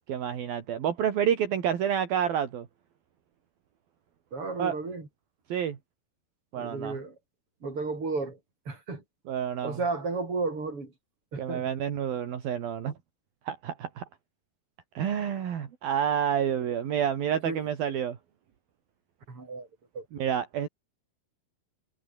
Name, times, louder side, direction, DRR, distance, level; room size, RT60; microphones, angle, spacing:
voice 1, 0.1-2.7 4.6-4.8 5.5-5.8 6.5-7.0 9.3-9.8 11.4-12.9 13.5-14.1 15.0-18.2 20.1-20.7, right 9 dB, 65° right, 4.2 m, -29 dB
voice 2, 4.3-5.1 6.6-7.2 7.6-8.4 8.7-9.0 9.6-10.9 11.3-11.7 17.4-17.6 19.3-19.7 19.9-20.1, right 3 dB, 35° right, 7.3 m, -33 dB
omnidirectional pair, 4.6 m